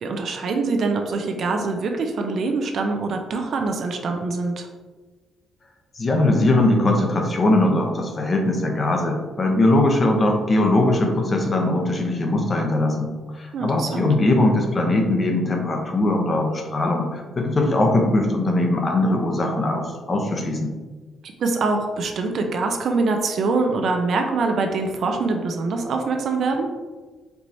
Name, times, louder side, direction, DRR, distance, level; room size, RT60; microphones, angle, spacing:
voice 1, 0.0-4.7 13.5-14.1 21.4-26.7, right 3 dB, 60° right, 4 dB, 0.5 m, -24 dB
voice 2, 6.0-20.7, left 2 dB, 35° left, 2 dB, 0.7 m, -20 dB
4.5 x 3.1 x 2.6 m, 1.3 s
cardioid pair, 90°, 0 cm